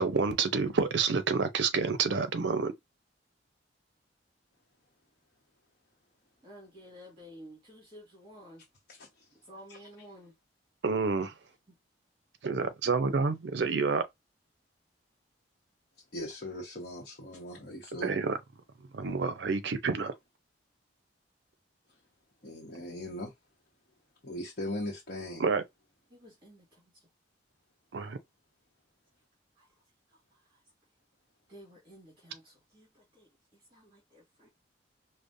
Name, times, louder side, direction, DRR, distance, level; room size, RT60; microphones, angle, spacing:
voice 1, 0.0-2.7 10.8-11.3 12.4-14.0 18.0-18.4 18.9-20.1 25.4-25.6 27.9-28.2, right 4 dB, 65° right, 0.5 m, -28 dB
voice 2, 6.4-8.6 9.4-10.3 11.7-11.8 16.5-16.6 26.1-27.1 29.6-29.8 30.1-30.6 31.5-34.5, equal, 25° right, 1.9 m, -53 dB
voice 3, 16.1-18.1 22.4-23.3 24.2-25.4, left 1 dB, 50° left, 0.9 m, -39 dB
4.9 x 2.1 x 2.6 m
head